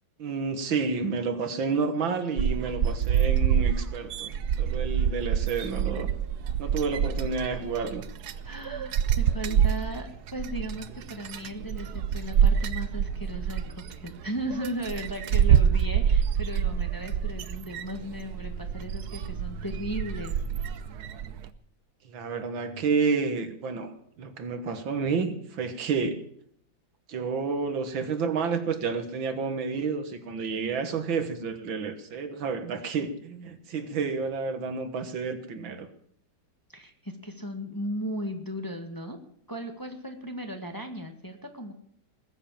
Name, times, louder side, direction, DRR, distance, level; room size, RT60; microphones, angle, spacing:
voice 1, 0.2-6.1 6.6-8.0 22.1-23.9 24.2-26.2 27.1-35.9, right 5 dB, 85° right, 9 dB, 2.3 m, -30 dB
sound 1, 2.4-21.5, right 8 dB, 65° right, 1.2 m, -27 dB
voice 2, 8.4-20.4 36.7-39.2 39.5-41.7, equal, 10° left, 4 dB, 1.6 m, -36 dB
20.0 x 7.9 x 7.5 m, 0.67 s
omnidirectional pair, 2.1 m